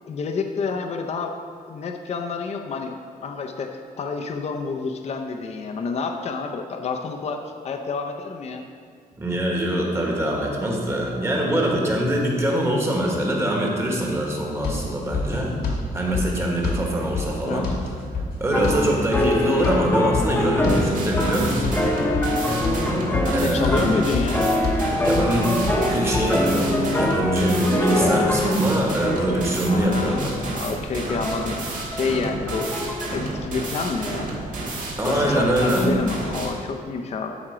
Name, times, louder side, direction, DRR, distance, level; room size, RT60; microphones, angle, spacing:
voice 1, 0.1-1.3 1.7-8.6 17.4-17.7 23.2-24.5 29.7-32.7 33.1-34.3 35.0-37.3, left 4 dB, 45° left, 4 dB, 0.6 m, -28 dB
voice 2, 9.2-15.5 15.9-17.7 18.4-21.8 23.3-23.9 25.0-30.3 35.0-35.9, right 1 dB, 15° right, -1 dB, 1.4 m, -23 dB
sound 1, 14.6-26.3, left 2 dB, 85° left, 1.8 m, -29 dB
sound 2, 18.5-28.7 29.0-30.5 31.1-33.1, left 1 dB, 15° left, 0.9 m, -25 dB
sound 3, 20.7-36.5, right 2 dB, 60° right, 1.5 m, -31 dB
12.5 x 4.4 x 4.9 m, 2.1 s
wide cardioid pair, 165°, 15 cm